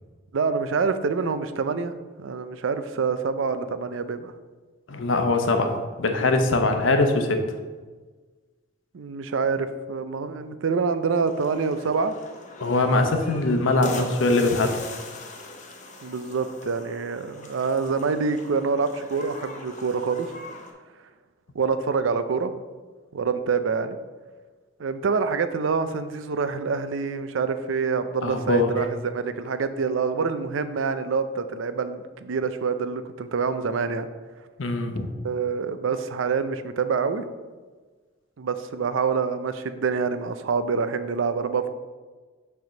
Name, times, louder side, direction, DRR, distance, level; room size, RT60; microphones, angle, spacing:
voice 1, 0.3-4.3 8.9-12.2 13.8-14.0 16.0-20.4 21.5-22.5 23.1-24.0 24.8-34.1 35.2-37.3 38.4-41.7, right 5 dB, 80° right, 11 dB, 0.5 m, -26 dB
voice 2, 4.9-7.4 12.6-14.8 28.2-28.7 34.6-35.1, left 2 dB, 85° left, 5 dB, 0.8 m, -22 dB
sound 1, 11.3-20.7, left 3 dB, 40° left, 0.8 m, -42 dB
6.4 x 3.5 x 5.9 m, 1.4 s
head